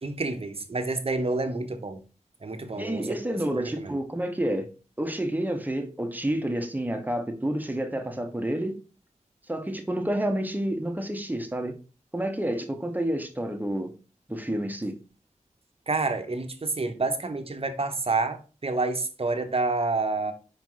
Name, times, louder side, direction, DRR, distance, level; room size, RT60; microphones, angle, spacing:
voice 1, 0.0-2.0 2.4-3.1 3.6-4.0 15.9-20.3, right 3 dB, 50° right, 1.0 m, -28 dB
voice 2, 2.8-4.7 5.0-8.8 9.5-11.7 12.1-13.9 14.3-15.0, right 1 dB, 15° right, 1.2 m, -29 dB
5.2 x 4.6 x 3.9 m
cardioid pair, 50°, 13 cm